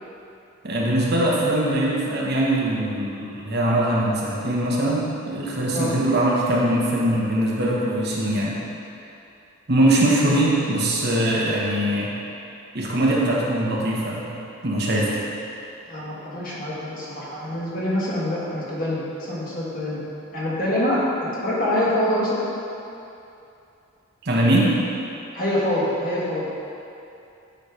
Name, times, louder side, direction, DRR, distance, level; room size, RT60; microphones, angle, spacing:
voice 1, 0.6-8.6 9.7-12.1 12.7-14.3 14.6-15.2 24.2-24.7, right 1 dB, 50° right, -4 dB, 1.0 m, -22 dB
voice 2, 15.9-20.0 20.3-22.5 25.3-26.5, left 1 dB, 40° left, -7 dB, 1.5 m, -25 dB
9.1 x 3.2 x 5.0 m, 2.7 s
head